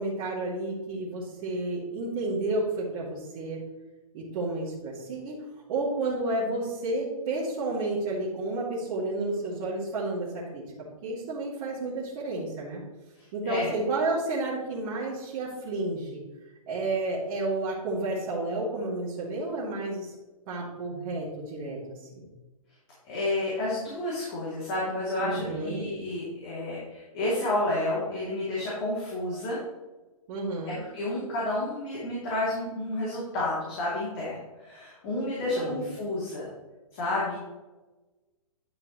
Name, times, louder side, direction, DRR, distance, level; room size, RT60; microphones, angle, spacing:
voice 1, 0.0-3.6 4.1-5.4 5.7-10.6 11.0-12.8 13.3-16.2 16.7-20.1 20.5-22.3 25.2-25.9 30.3-30.8 35.6-35.8, right 2 dB, 40° right, -9 dB, 2.4 m, -31 dB
voice 2, 13.2-13.7 23.0-29.6 30.9-36.5 36.9-37.4, left 1 dB, 40° left, -7 dB, 2.9 m, -30 dB
10.5 x 5.7 x 3.2 m, 1.1 s
hypercardioid pair, 125°, 18 cm